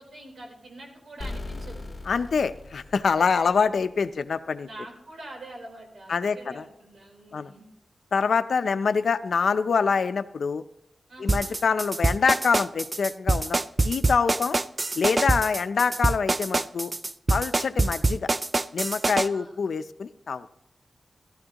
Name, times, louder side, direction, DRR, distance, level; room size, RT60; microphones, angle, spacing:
voice 1, 0.0-1.9 3.3-3.6 4.6-7.7 11.1-11.5 14.4-14.6 15.4-15.7 19.2-19.6, right 1 dB, 85° right, 0 dB, 3.8 m, -45 dB
sound 1, 1.2-3.9, left 2 dB, 25° left, 2.2 m, -39 dB
voice 2, 2.1-4.7 6.1-6.6 7.3-7.5 8.1-10.6 11.2-13.6 13.8-14.6 15.0-16.9 17.3-18.3 18.7-20.5, left 5 dB, 80° left, 12 dB, 0.5 m, -25 dB
sound 2, 11.3-19.3, right 3 dB, 35° right, 0.4 m, -24 dB
16.0 x 13.0 x 2.9 m, 0.78 s
wide cardioid pair, 80°, 0 cm